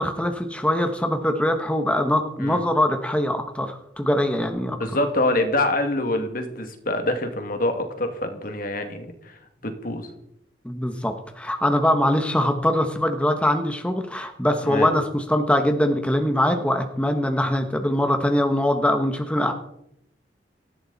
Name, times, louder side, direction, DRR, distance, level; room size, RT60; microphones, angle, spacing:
voice 1, 0.0-4.8 10.6-19.5, left 1 dB, 5° left, 5 dB, 1.3 m, -22 dB
voice 2, 4.8-9.4 9.6-10.1 14.6-14.9, left 1 dB, 55° left, 6 dB, 2.3 m, -25 dB
18.5 x 15.0 x 4.1 m, 0.80 s
head